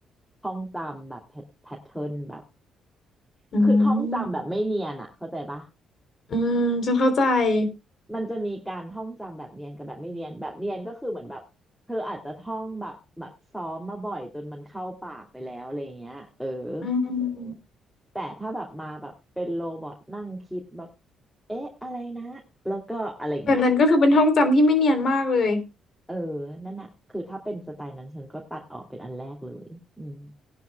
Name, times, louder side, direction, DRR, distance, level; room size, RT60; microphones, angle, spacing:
voice 1, 0.4-2.4 3.6-5.7 8.1-11.4 11.9-16.9 18.1-20.9 21.5-23.6 26.1-30.3, right 1 dB, ahead, 2 dB, 2.6 m, -34 dB
voice 2, 3.5-4.3 6.3-7.7 16.8-17.5 23.5-25.6, left 2 dB, 55° left, 9 dB, 3.3 m, -20 dB
19.0 x 10.5 x 2.2 m, 0.26 s
cardioid pair, 90°, 0 cm